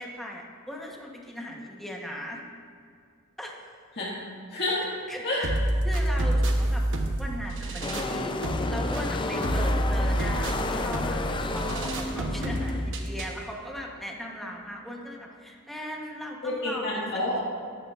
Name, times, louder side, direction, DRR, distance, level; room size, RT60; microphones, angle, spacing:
voice 1, 0.0-2.4 3.4-3.6 5.1-5.5 5.8-6.8 7.2-16.8, equal, ahead, -1 dB, 1.0 m, -38 dB
voice 2, 4.5-4.8 5.2-5.4 16.4-17.4, left 2 dB, 50° left, -7 dB, 1.8 m, -28 dB
sound 1, 5.4-13.4, right 1 dB, 60° right, 0.9 m, -28 dB
sound 2, 7.8-12.9, left 2 dB, 20° left, 0.4 m, -31 dB
12.5 x 10.5 x 2.4 m, 2.2 s
head